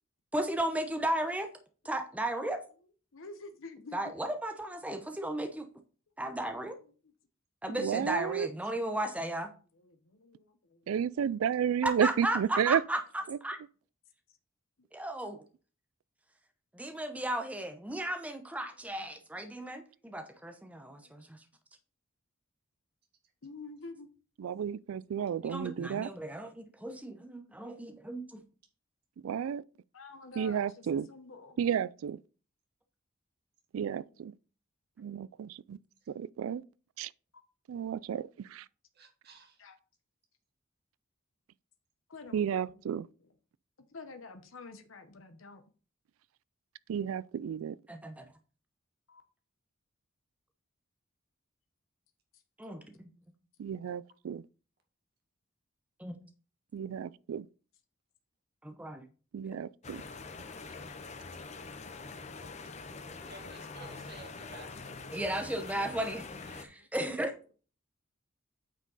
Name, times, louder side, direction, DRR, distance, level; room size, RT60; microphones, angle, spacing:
voice 1, 0.3-1.5 1.8-2.6 3.9-5.7 6.2-6.8 7.6-9.5 11.8-13.0 13.4-13.6 14.9-15.4 16.7-21.4 25.4-28.4 47.9-48.3 52.6-53.1 56.0-56.2 58.6-59.1 65.1-67.3, right 1 dB, 5° right, 0.7 m, -35 dB
voice 2, 3.1-4.1 9.0-9.1 9.7-10.9 18.9-19.2 20.8-21.3 23.4-24.1 25.0-25.1 29.9-31.6 34.1-34.2 39.6-39.8 42.1-43.3 43.9-45.6 49.1-49.2 52.3-52.4 60.0-60.1 62.3-62.7 66.7-66.9, left 3 dB, 75° left, 1.0 m, -50 dB
voice 3, 7.7-8.5 10.9-12.8 13.3-13.4 24.4-26.1 29.2-29.6 30.4-31.1 31.6-32.2 33.7-34.3 35.0-35.8 36.1-36.6 37.0-37.1 37.7-38.7 42.3-43.1 46.9-47.8 53.6-54.5 56.7-57.5 59.3-60.0, right 8 dB, 85° right, 0.3 m, -32 dB
voice 4, 38.9-39.6 63.2-64.9 65.4-65.8 66.5-66.6, right 2 dB, 50° right, 1.9 m, -53 dB
sound 1, 59.8-66.7, left 4 dB, 30° left, 0.6 m, -44 dB
9.0 x 5.2 x 4.0 m
head